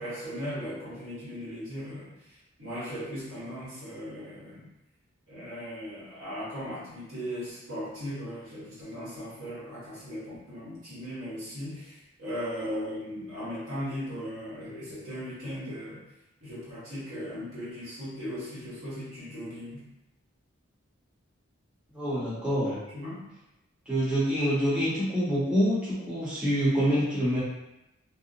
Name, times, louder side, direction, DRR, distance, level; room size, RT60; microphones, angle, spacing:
voice 1, 0.0-2.1 2.6-4.7 5.3-16.0 16.4-19.9 22.6-23.2, equal, 80° right, -10 dB, 1.3 m, -38 dB
voice 2, 21.9-22.8 23.9-27.4, equal, 5° right, -11 dB, 0.8 m, -26 dB
2.6 x 2.0 x 2.6 m, 0.90 s
head